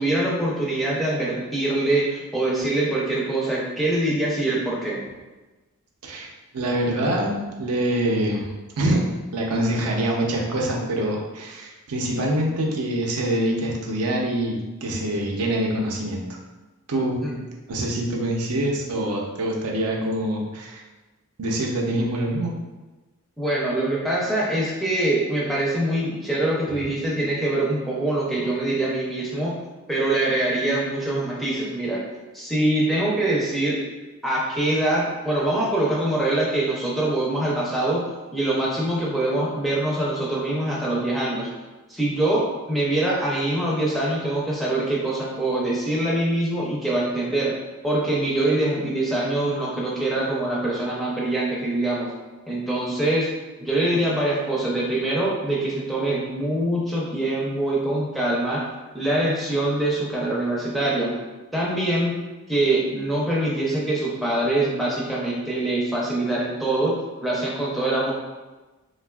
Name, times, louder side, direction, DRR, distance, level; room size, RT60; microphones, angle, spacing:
voice 1, 0.0-5.0 17.2-17.4 23.4-29.6 29.9-32.0 32.3-33.8 34.2-38.0 38.3-41.5 41.9-47.5 47.8-52.1 52.5-53.3 53.6-58.7 58.9-61.1 61.5-62.2 62.5-68.1, right 1 dB, ahead, -5 dB, 0.4 m, -24 dB
voice 2, 6.5-8.5 8.8-9.0 9.3-16.3 16.9-17.3 17.7-20.8 21.4-22.5 26.7-26.8, right 1 dB, 85° right, -1 dB, 0.5 m, -25 dB
3.3 x 2.2 x 2.2 m, 1.2 s
head